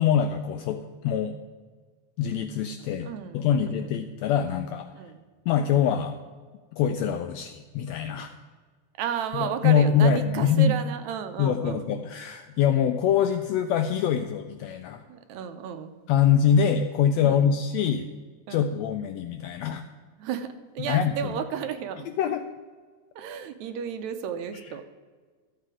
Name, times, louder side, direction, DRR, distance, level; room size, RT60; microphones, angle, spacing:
voice 1, 0.0-1.4 2.2-3.1 3.3-4.9 5.5-6.2 6.7-8.3 9.3-10.7 11.4-15.0 16.1-18.1 18.5-19.8 20.8-21.4 22.2-22.4 24.5-24.7, left 8 dB, 85° left, 8 dB, 1.5 m, -24 dB
voice 2, 3.1-3.9 4.9-5.2 9.0-11.9 15.1-15.9 17.2-17.5 18.5-18.8 20.2-22.1 23.2-24.8, right 8 dB, 75° right, 8 dB, 1.9 m, -33 dB
13.0 x 7.6 x 4.8 m, 1.5 s
omnidirectional pair, 3.6 m